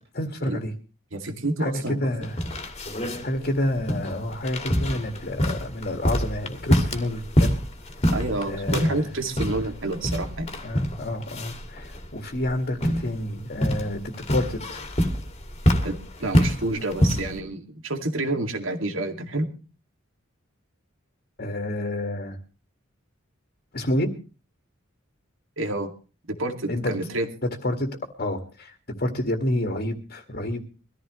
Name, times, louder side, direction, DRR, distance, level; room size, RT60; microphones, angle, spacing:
voice 1, 0.1-0.7 1.6-2.4 3.2-7.6 8.4-9.1 9.6-9.7 10.6-14.8 21.4-22.4 23.7-24.1 26.7-26.9 27.6-27.9 28.2-28.7 29.0-30.8, left 1 dB, 45° left, 5 dB, 2.0 m, -29 dB
voice 2, 1.1-2.0 8.1-10.5 15.8-19.5 25.6-25.9 26.3-27.3, right 2 dB, 70° right, 6 dB, 2.4 m, -28 dB
sound 1, 2.2-17.4, equal, 30° left, 2.2 m, -26 dB
23.0 x 14.5 x 3.2 m, 0.34 s
head